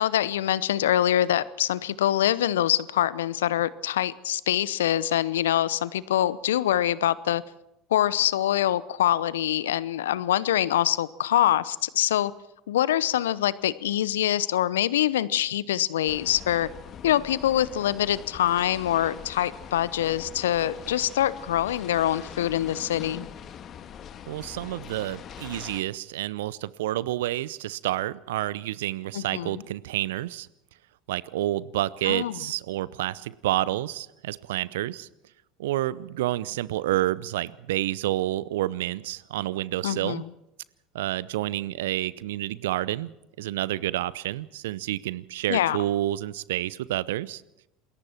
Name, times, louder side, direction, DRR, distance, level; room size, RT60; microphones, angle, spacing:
voice 1, 0.0-7.4 7.9-12.3 12.7-16.7 17.0-23.3 29.1-29.5 32.0-32.4 39.8-40.2 45.5-45.8, left 12 dB, 75° left, 19 dB, 0.8 m, -24 dB
sound 1, 16.1-25.8, left 8 dB, 40° left, 1.7 m, -42 dB
voice 2, 24.3-30.5 31.1-35.1 35.6-40.2 40.9-43.1 43.4-47.4, right 15 dB, 70° right, 21 dB, 0.7 m, -29 dB
28.0 x 21.5 x 4.5 m, 0.87 s
figure-of-eight pair, 70°, 0 cm